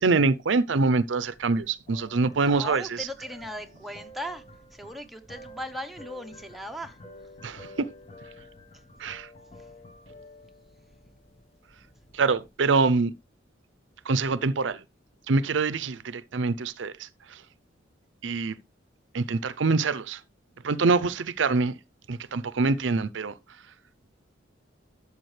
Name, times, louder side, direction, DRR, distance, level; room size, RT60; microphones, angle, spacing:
voice 1, 0.0-3.1 7.4-7.9 9.0-9.3 12.1-13.1 14.1-14.8 15.3-17.4 18.2-18.6 19.1-20.2 20.6-21.7 22.1-23.4, right 4 dB, 85° right, 0.6 m, -25 dB
sound 1, 1.2-12.8, left 1 dB, 35° left, 1.4 m, -50 dB
voice 2, 2.4-4.4 4.7-7.0, equal, ahead, 0.9 m, -38 dB
12.0 x 7.2 x 3.3 m
head